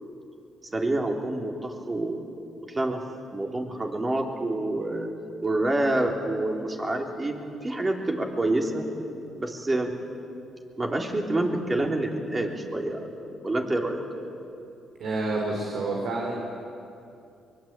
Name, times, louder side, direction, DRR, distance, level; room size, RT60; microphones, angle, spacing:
voice 1, 0.7-2.2 2.7-3.0 3.3-5.1 5.4-7.3 7.6-8.9 9.4-9.9 10.8-13.1 13.4-14.0, right 2 dB, 25° right, 1 dB, 3.7 m, -27 dB
voice 2, 15.0-16.4, right 2 dB, 70° right, -1 dB, 4.4 m, -28 dB
23.0 x 22.5 x 9.1 m, 2.6 s
cardioid pair, 90°, 0 cm